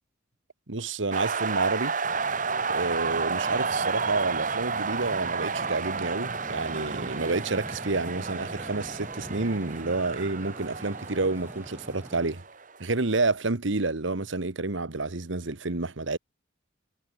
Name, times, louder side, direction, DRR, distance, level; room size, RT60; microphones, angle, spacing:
voice 1, 0.7-1.9 2.7-12.4 12.8-16.2, right 3 dB, 70° right, 1.4 m, -29 dB
sound 1, 1.1-12.8, right 5 dB, 40° right, 2.3 m, -31 dB
sound 2, 2.0-12.3, equal, 10° right, 3.3 m, -44 dB
head